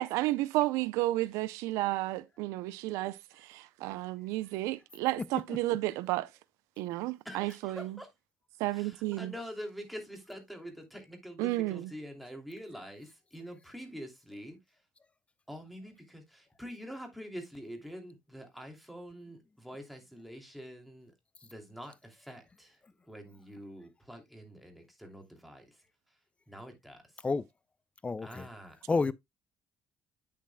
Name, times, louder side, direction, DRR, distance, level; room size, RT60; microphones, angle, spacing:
voice 1, 0.0-6.3 6.8-8.0 8.6-9.3 11.4-11.9, right 18 dB, 85° right, 0.5 m, -32 dB
voice 2, 7.2-8.1 8.7-14.6 15.5-21.1 21.4-25.8 26.5-27.2 28.2-28.8, equal, ahead, 2.7 m, -46 dB
voice 3, 28.0-28.5 28.9-29.1, left 4 dB, 20° left, 0.5 m, -29 dB
8.6 x 7.4 x 2.2 m
cardioid pair, 90°, 5 cm